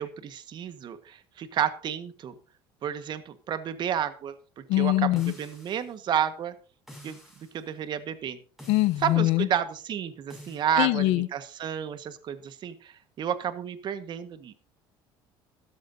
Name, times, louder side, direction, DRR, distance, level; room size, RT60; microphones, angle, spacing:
voice 1, 0.0-2.3 2.8-6.5 7.0-7.2 7.5-8.4 9.0-14.5, right 9 dB, 45° right, 11 dB, 1.5 m, -31 dB
voice 2, 4.7-5.3 8.7-9.5 10.8-11.3, left 17 dB, 75° left, 15 dB, 0.8 m, -23 dB
sound 1, 5.2-5.9 6.9-7.6 8.6-9.2 10.3-10.6, equal, ahead, 6.6 m, -48 dB
14.5 x 13.5 x 2.7 m, 0.37 s
cardioid pair, 120°, 10 cm